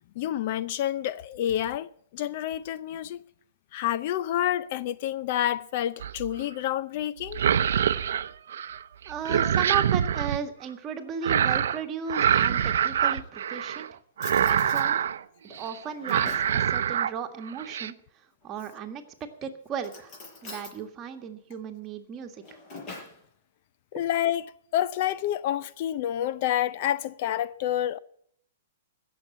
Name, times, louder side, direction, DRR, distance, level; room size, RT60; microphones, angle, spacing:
voice 1, 0.2-3.2 3.7-7.4 23.9-28.0, left 12 dB, 45° left, 0.5 m, -28 dB
sound 1, 6.0-6.4 7.2-8.8 9.1-10.4 11.2-11.8 12.1-13.9 14.2-15.2 15.5-15.8 16.0-17.1 17.5-17.9, right 9 dB, 75° right, 0.6 m, -25 dB
voice 2, 9.1-13.9 14.4-15.0 15.4-17.9 18.4-20.1 20.4-22.3, right 8 dB, 25° right, 1.7 m, -35 dB
Drawer open or close, 12.3-13.3 13.8-13.9 14.2-14.9 15.5-16.6 18.5-19.0 19.8-20.8 22.2-23.2, left 3 dB, 30° left, 6.5 m, -45 dB
16.5 x 7.0 x 9.0 m
hypercardioid pair, 145°, 0 cm